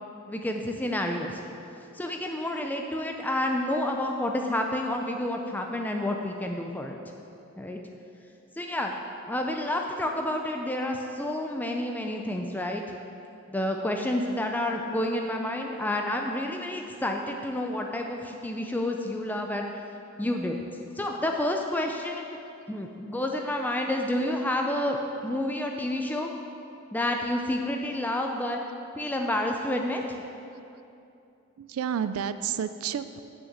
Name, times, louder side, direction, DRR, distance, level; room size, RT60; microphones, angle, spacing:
voice 1, 0.3-1.4 1.9-7.0 7.6-7.8 8.6-8.9 9.3-12.8 13.5-19.7 20.2-20.6 21.0-22.2 22.7-26.3 26.9-28.6 29.0-30.0, left 1 dB, 10° left, 2 dB, 0.4 m, -29 dB
voice 2, 31.6-33.2, right 8 dB, 90° right, 12 dB, 0.3 m, -31 dB
6.4 x 6.2 x 7.2 m, 2.7 s
head